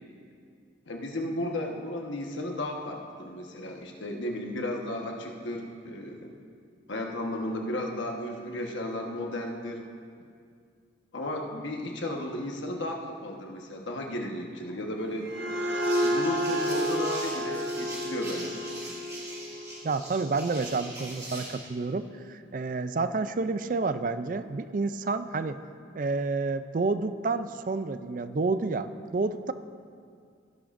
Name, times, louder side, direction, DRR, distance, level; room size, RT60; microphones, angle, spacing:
voice 1, 0.9-6.3 6.9-9.8 11.1-15.3 16.0-18.8, left 1 dB, 80° left, 1 dB, 1.3 m, -34 dB
sound 1, 15.0-20.4, equal, 65° right, 1.3 m, -31 dB
sound 2, 15.7-21.6, right 1 dB, 20° right, 2.4 m, -41 dB
voice 2, 19.8-25.6 25.9-29.5, right 3 dB, 45° right, 12 dB, 0.4 m, -29 dB
16.5 x 11.0 x 2.6 m, 2.2 s
head